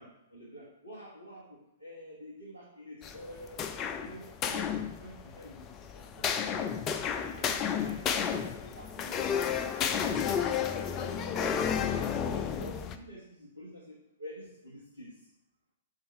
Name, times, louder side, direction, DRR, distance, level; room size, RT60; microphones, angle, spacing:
voice 1, 0.0-9.2 9.6-15.2, equal, 90° right, -5 dB, 1.3 m, -48 dB
sound 1, 3.0-13.0, left 7 dB, 25° left, 0.4 m, -32 dB
5.2 x 3.9 x 5.5 m, 0.84 s
figure-of-eight pair, 110°, 0 cm